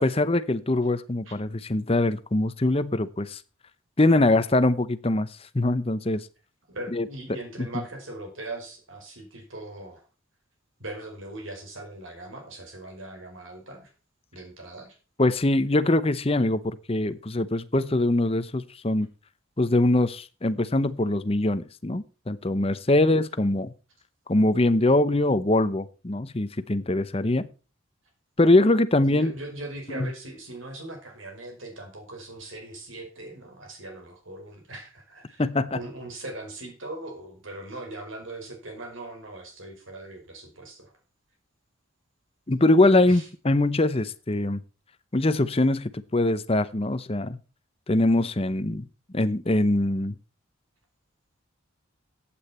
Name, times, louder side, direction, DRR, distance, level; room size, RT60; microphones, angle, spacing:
voice 1, 0.0-3.4 4.0-6.3 6.9-7.7 15.2-19.1 19.6-23.7 24.3-27.5 28.4-29.3 29.9-30.1 35.4-35.8 42.5-44.6 45.1-47.4 47.9-48.9 49.1-50.1, left 2 dB, 25° left, 13 dB, 0.7 m, -23 dB
voice 2, 6.7-10.0 10.8-13.9 14.3-15.0 29.1-35.4 35.7-40.9 43.1-43.3, right 2 dB, 65° right, 4 dB, 5.1 m, -40 dB
15.0 x 8.7 x 4.3 m, 0.34 s
head